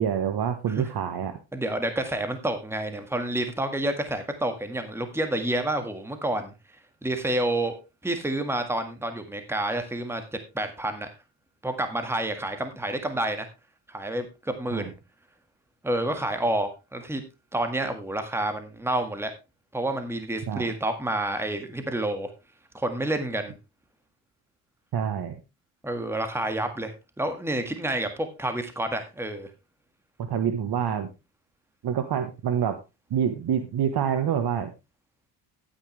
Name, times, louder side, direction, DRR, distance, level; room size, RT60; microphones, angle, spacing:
voice 1, 0.0-1.4 14.7-14.9 20.5-20.7 24.9-25.4 30.3-31.1 31.8-32.8 33.1-34.7, right 8 dB, 55° right, 9 dB, 1.3 m, -26 dB
voice 2, 1.5-6.5 7.0-11.1 11.6-13.5 13.9-14.9 15.8-17.2 17.5-19.3 19.7-22.3 22.7-23.5 25.8-29.5, right 1 dB, 5° right, 7 dB, 1.7 m, -29 dB
13.0 x 9.2 x 3.3 m, 0.26 s
cardioid pair, 105°, 45 cm